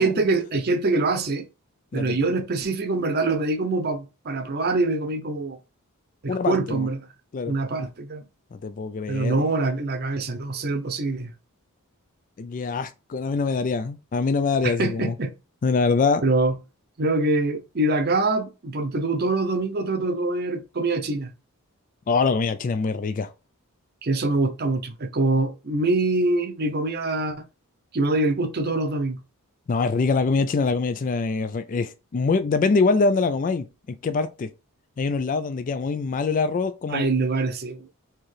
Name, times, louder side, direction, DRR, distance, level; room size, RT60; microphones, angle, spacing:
voice 1, 0.0-1.4 1.9-5.6 6.2-7.0 7.5-8.2 9.1-11.3 14.6-15.3 16.2-16.5 17.0-21.3 24.0-27.4 27.9-29.2 36.9-37.9, right 2 dB, 45° right, 0.7 m, -24 dB
voice 2, 6.3-6.9 7.3-7.5 8.5-9.4 12.4-15.2 15.6-16.2 22.1-23.3 29.7-33.6 34.0-34.5 35.0-37.1, left 4 dB, 35° left, 0.3 m, -24 dB
4.5 x 3.7 x 3.2 m
head